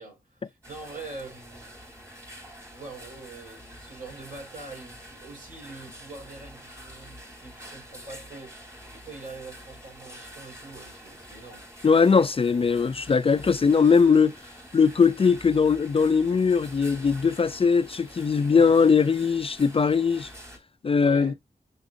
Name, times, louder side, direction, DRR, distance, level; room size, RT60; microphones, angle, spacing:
voice 1, 0.0-1.7 2.7-11.7 18.5-18.8 21.0-21.4, right 3 dB, 60° right, 5.1 m, -43 dB
sound 1, 0.6-20.6, equal, 20° right, 3.2 m, -46 dB
voice 2, 11.8-14.3 14.7-20.3 20.8-21.3, left 5 dB, 40° left, 0.3 m, -20 dB
6.8 x 6.1 x 2.6 m
wide cardioid pair, 95°, 16 cm